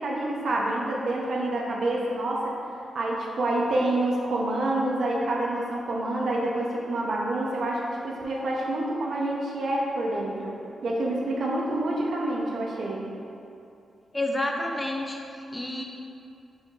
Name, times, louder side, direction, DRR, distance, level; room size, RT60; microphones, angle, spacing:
voice 1, 0.0-2.5 2.9-10.5 10.8-13.1, right 1 dB, 50° right, -3 dB, 0.5 m, -27 dB
voice 2, 14.1-15.8, left 1 dB, 10° left, 1 dB, 0.3 m, -29 dB
4.3 x 2.3 x 4.7 m, 2.6 s
wide cardioid pair, 175°, 0 cm